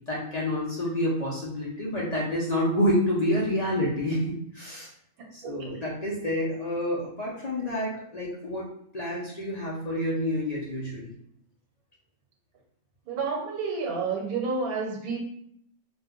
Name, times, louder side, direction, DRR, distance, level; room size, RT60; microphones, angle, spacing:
voice 1, 0.1-4.9 5.3-8.7 8.9-11.1, left 1 dB, 60° left, -5 dB, 0.4 m, -28 dB
voice 2, 5.2-5.5 13.1-15.2, right 4 dB, 85° right, 0 dB, 1.2 m, -30 dB
2.5 x 2.2 x 3.5 m, 0.70 s
omnidirectional pair, 1.5 m